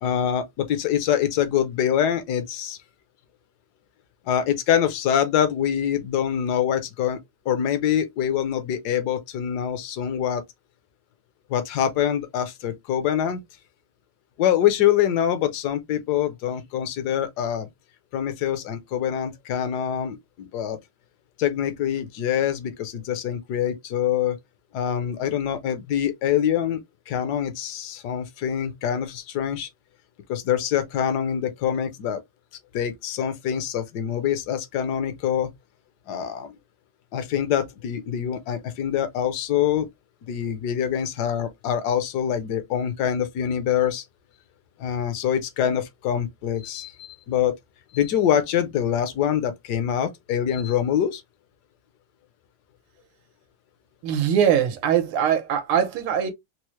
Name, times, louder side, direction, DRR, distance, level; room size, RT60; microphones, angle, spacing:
voice 1, 0.0-2.8 4.3-7.2 7.5-10.4 11.5-13.4 14.4-17.7 18.1-20.8 21.4-24.4 24.7-29.7 30.3-32.2 32.7-35.5 36.1-36.5 37.1-39.9 40.3-44.0 44.8-47.5 47.9-51.2, left 9 dB, 65° left, 1.1 m, -25 dB
voice 2, 54.0-56.3, right 8 dB, 85° right, 1.7 m, -22 dB
4.5 x 2.0 x 3.0 m
omnidirectional pair, 2.3 m